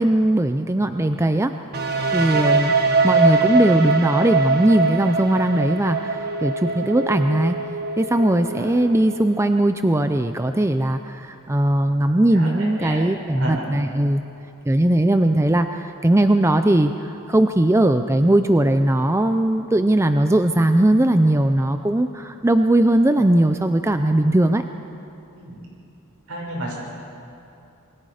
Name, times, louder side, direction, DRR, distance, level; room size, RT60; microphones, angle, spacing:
voice 1, 0.0-1.5 2.1-2.7 3.0-7.6 8.0-14.2 14.7-16.9 17.3-24.6, right 1 dB, 10° right, 7 dB, 0.5 m, -19 dB
sound 1, 1.7-9.5, right 3 dB, 45° right, 1.5 m, -23 dB
voice 2, 12.3-13.0 13.3-13.8 25.3-25.6 26.3-26.7, right 1 dB, 70° right, -3 dB, 6.8 m, -32 dB
27.5 x 21.5 x 5.0 m, 2.7 s
head